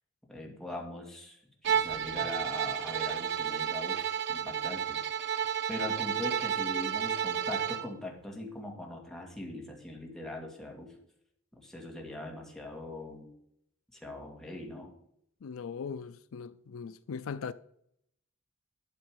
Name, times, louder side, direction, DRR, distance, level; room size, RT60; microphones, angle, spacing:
voice 1, 0.3-5.0 5.7-10.9 11.5-13.3 13.9-14.9, left 1 dB, ahead, 2.4 m, -41 dB
sound 1, 1.6-3.7, left 2 dB, 60° left, 1.6 m, -56 dB
Bowed string instrument, 1.6-7.9, right 8 dB, 55° right, 0.6 m, -31 dB
voice 2, 15.4-17.5, left 6 dB, 75° left, 0.4 m, -39 dB
12.0 x 7.4 x 4.7 m
head